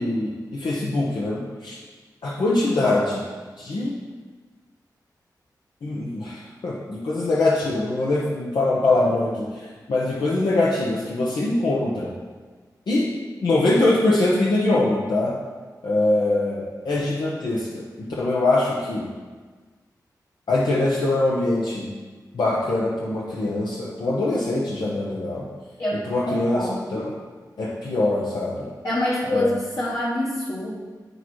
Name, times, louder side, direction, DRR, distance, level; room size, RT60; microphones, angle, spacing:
voice 1, 0.0-1.8 2.2-3.2 3.6-3.9 5.8-12.1 12.9-13.0 13.4-15.3 15.8-19.1 20.5-21.9 22.3-25.5 25.9-27.1 27.6-28.7 29.2-29.5, left 2 dB, 85° left, -5 dB, 1.0 m, -23 dB
voice 2, 26.3-27.1 28.8-30.7, left 1 dB, 45° left, -7 dB, 1.2 m, -26 dB
8.7 x 6.7 x 3.1 m, 1.4 s
wide cardioid pair, 105°, 7 cm